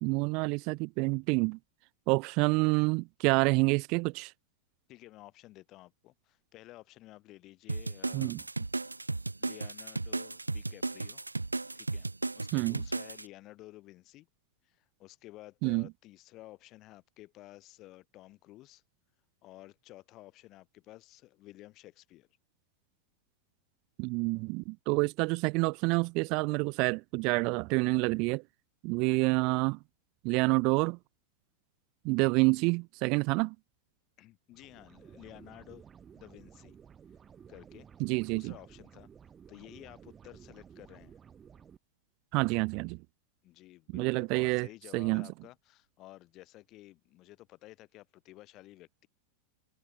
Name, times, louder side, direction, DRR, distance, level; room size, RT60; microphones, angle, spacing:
voice 1, 0.0-1.6 2.1-4.3 8.1-8.4 12.5-12.8 15.6-15.9 24.0-28.4 28.8-29.8 30.2-31.0 32.0-33.6 38.0-38.5 42.3-43.0 43.9-44.7 44.9-45.3, right 29 dB, 45° right, 0.4 m, -28 dB
voice 2, 4.9-8.3 9.4-11.2 11.7-12.1 12.3-14.3 14.6-18.8 19.4-22.3 34.2-35.9 36.1-36.8 37.5-37.9 38.3-39.1 39.5-41.2 43.4-49.1, left 17 dB, 35° left, 4.8 m, -53 dB
sound 1, 7.7-13.3, right 2 dB, 80° right, 1.5 m, -35 dB
sound 2, 34.5-41.8, right 7 dB, 20° right, 4.3 m, -54 dB
figure-of-eight pair, 90°, 0 cm